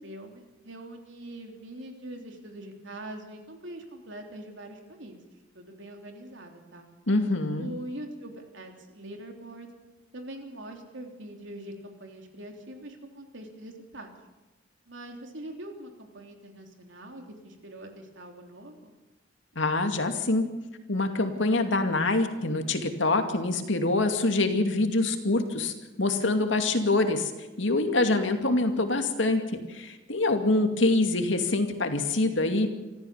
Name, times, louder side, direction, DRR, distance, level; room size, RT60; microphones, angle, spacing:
voice 1, 0.0-5.2 5.5-6.9 7.6-9.7 10.1-14.1 14.9-18.9, right 1 dB, 70° right, 3 dB, 3.5 m, -43 dB
voice 2, 7.1-7.7 19.6-20.5 20.9-25.7 26.0-27.3 27.6-32.8, left 2 dB, 75° left, 6 dB, 2.4 m, -25 dB
25.5 x 14.0 x 7.2 m, 1.1 s
head